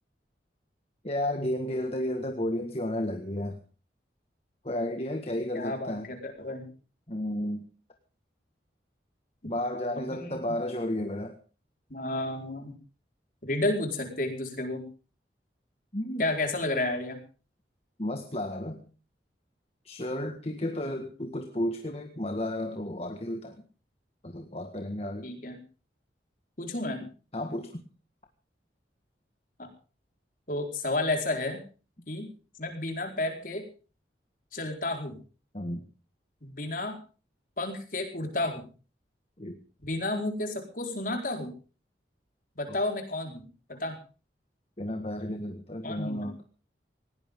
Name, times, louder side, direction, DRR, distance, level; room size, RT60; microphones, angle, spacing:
voice 1, 1.0-3.6 4.6-6.1 7.1-7.6 9.4-11.3 15.9-16.3 18.0-18.8 19.9-23.6 24.2-25.3 27.3-27.8 35.5-35.9 39.4-39.6 44.8-46.4, left 1 dB, 35° left, 5 dB, 1.7 m, -32 dB
voice 2, 5.5-6.6 10.1-10.6 11.9-12.7 13.4-14.8 16.2-17.2 25.2-25.5 26.6-27.0 30.5-31.6 32.1-32.3 32.6-33.6 34.5-35.2 36.4-37.0 37.6-38.6 39.8-41.5 42.6-43.9 45.8-46.3, left 2 dB, 50° left, 3 dB, 4.5 m, -31 dB
19.5 x 17.5 x 3.7 m, 0.37 s
head